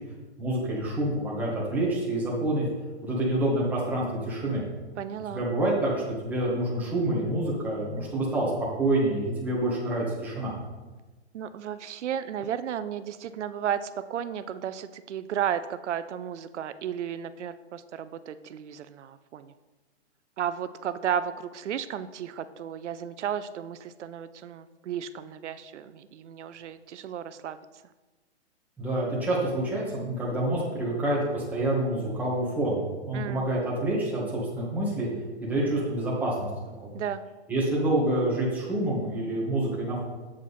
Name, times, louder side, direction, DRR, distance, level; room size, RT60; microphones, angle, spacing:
voice 1, 0.4-2.7 3.0-4.6 5.3-10.5 28.8-35.1 35.4-36.5 36.8-37.0 37.5-40.0, right 1 dB, 5° right, -6 dB, 1.7 m, -27 dB
voice 2, 5.0-5.4 11.3-19.5 20.4-27.6 33.1-33.5 36.9-37.3, right 9 dB, 85° right, 12 dB, 0.6 m, -33 dB
7.4 x 7.3 x 4.2 m, 1.2 s
hypercardioid pair, 160°, 34 cm